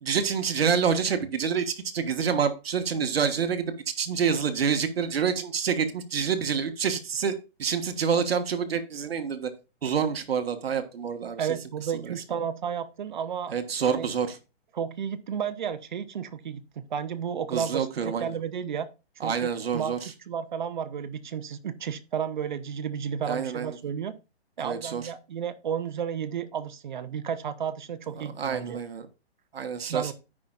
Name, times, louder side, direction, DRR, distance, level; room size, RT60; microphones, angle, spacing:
voice 1, 0.0-9.5 9.8-11.5 11.9-12.1 13.5-14.4 17.5-18.3 19.2-20.1 23.3-23.8 24.6-25.0 28.2-29.1 29.5-30.1, right 6 dB, 65° right, 1.4 m, -27 dB
voice 2, 11.4-14.1 14.7-18.9 19.2-20.0 20.3-24.1 24.6-28.8 29.9-30.1, right 8 dB, 45° right, 0.8 m, -32 dB
13.5 x 5.5 x 2.4 m
hypercardioid pair, 165°, 32 cm